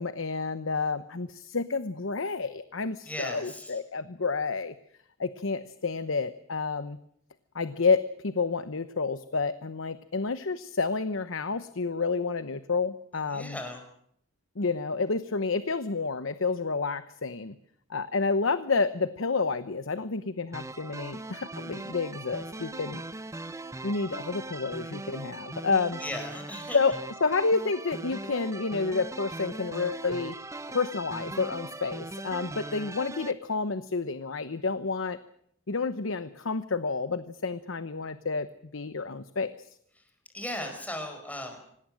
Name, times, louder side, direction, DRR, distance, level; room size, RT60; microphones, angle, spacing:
voice 1, 0.0-4.7 5.2-7.0 7.5-13.6 14.6-17.5 17.9-23.0 23.8-26.0 26.7-30.4 30.7-35.2 35.7-38.5 38.7-39.7, left 4 dB, 75° left, 12 dB, 1.0 m, -29 dB
voice 2, 3.1-3.8 13.3-13.8 26.0-26.8 40.3-41.6, left 1 dB, 10° left, 4 dB, 5.2 m, -37 dB
sound 1, 20.5-33.3, right 2 dB, 15° right, 0.9 m, -40 dB
26.0 x 19.0 x 7.7 m, 0.71 s
head